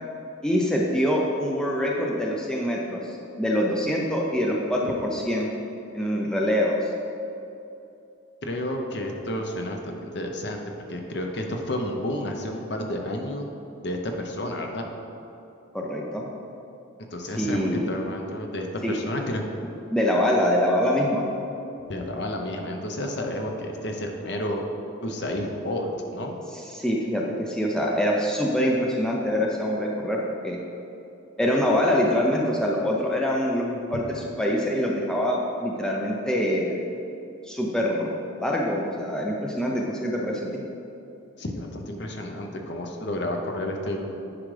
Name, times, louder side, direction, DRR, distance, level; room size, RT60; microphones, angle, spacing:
voice 1, 0.4-5.5 5.9-6.9 15.7-16.3 17.4-17.9 18.8-18.9 19.9-21.2 26.7-30.6 31.4-36.8 37.4-38.1 38.4-40.6, equal, 5° left, -2 dB, 0.5 m, -24 dB
voice 2, 8.4-10.6 10.9-13.5 13.8-14.8 17.1-19.4 21.9-24.6 25.0-26.4 41.4-44.0, left 1 dB, 55° left, 2 dB, 0.7 m, -31 dB
9.9 x 4.9 x 3.3 m, 2.8 s
head